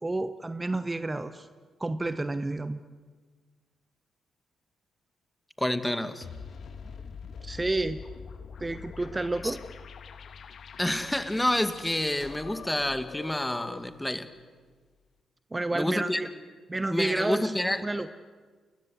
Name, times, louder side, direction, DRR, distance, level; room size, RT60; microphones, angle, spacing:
voice 1, 0.0-1.5 1.8-2.8 7.4-8.0 8.6-9.6 15.5-16.3 16.7-17.5 17.8-18.1, right 2 dB, 25° right, 11 dB, 1.1 m, -30 dB
voice 2, 5.6-6.3 9.4-9.6 10.8-14.3 15.7-16.2 16.9-17.8, left 1 dB, 10° left, 10 dB, 2.2 m, -28 dB
sound 1, 6.2-14.0, left 6 dB, 60° left, 1.7 m, -44 dB
29.0 x 22.0 x 8.2 m, 1.5 s
hypercardioid pair, 45°, 0 cm